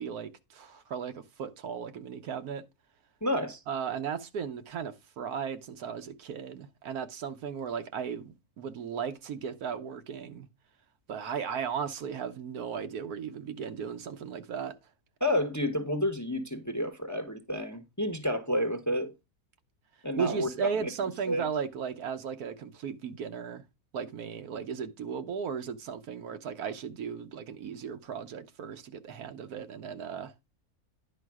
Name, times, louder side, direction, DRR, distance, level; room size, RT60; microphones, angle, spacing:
voice 1, 0.0-2.6 3.7-10.5 11.1-14.7 20.2-23.6 23.9-30.3, right 7 dB, 85° right, 1.4 m, -36 dB
voice 2, 3.2-3.6 15.2-19.1 20.0-20.5 20.8-20.9 21.3-21.5, left 1 dB, 15° left, 0.8 m, -30 dB
10.0 x 5.0 x 4.7 m
omnidirectional pair, 1.5 m